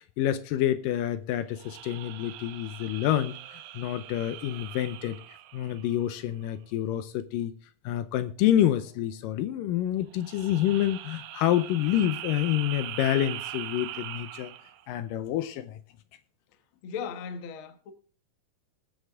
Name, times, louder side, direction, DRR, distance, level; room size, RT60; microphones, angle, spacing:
voice 1, 0.2-5.2 5.5-7.5 7.8-14.5 14.9-15.8, left 12 dB, 80° left, 2.3 m, -28 dB
sound 1, 1.5-6.3 10.1-14.8, right 13 dB, 80° right, 2.5 m, -41 dB
voice 2, 16.8-17.9, left 6 dB, 60° left, 1.4 m, -37 dB
20.5 x 7.0 x 3.5 m
omnidirectional pair, 4.1 m